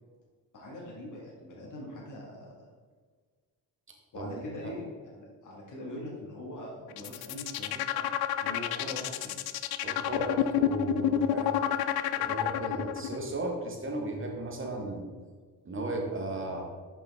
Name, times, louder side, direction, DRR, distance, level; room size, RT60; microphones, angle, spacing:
voice 1, 0.5-2.5 4.1-4.9 5.1-8.1 8.4-9.3 12.7-12.9, left 1 dB, 50° left, -4 dB, 1.8 m, -42 dB
voice 2, 4.1-4.7 9.8-11.5 12.1-15.1 15.6-16.6, right 2 dB, 30° right, 1 dB, 1.5 m, -35 dB
sound 1, 6.9-13.2, left 11 dB, 65° left, 0.5 m, -29 dB
5.7 x 5.4 x 3.5 m, 1.5 s
supercardioid pair, 65°, 40 cm